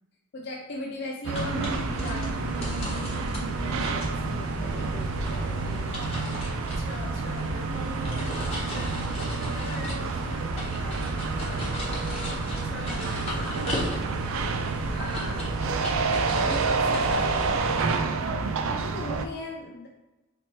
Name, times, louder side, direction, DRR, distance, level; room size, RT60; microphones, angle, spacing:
voice 1, 0.3-6.3 8.2-8.7 13.1-13.6 14.9-15.8 17.1-18.0 18.6-19.9, left 1 dB, 55° left, -1 dB, 0.5 m, -39 dB
sound 1, 1.2-19.2, right 4 dB, 90° right, 0.4 m, -29 dB
sound 2, 1.3-18.0, equal, 30° left, 0.9 m, -36 dB
voice 2, 6.5-9.0 9.4-12.0 12.4-13.8 14.1-14.7 16.4-17.7, left 2 dB, 85° left, -1 dB, 1.0 m, -42 dB
4.3 x 2.8 x 3.0 m, 1.0 s
head